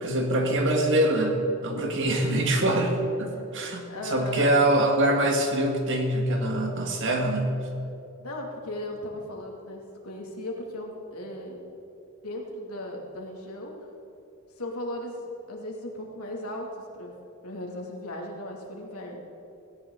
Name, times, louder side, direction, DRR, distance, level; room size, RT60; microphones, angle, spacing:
voice 1, 0.0-7.5, right 1 dB, 55° right, 3 dB, 2.0 m, -24 dB
voice 2, 3.9-4.5 8.2-11.6 12.2-13.7 14.6-15.1 15.5-16.7 17.0-17.1 17.4-19.2, left 1 dB, 80° left, 0 dB, 2.7 m, -36 dB
17.5 x 16.5 x 4.0 m, 2.8 s
head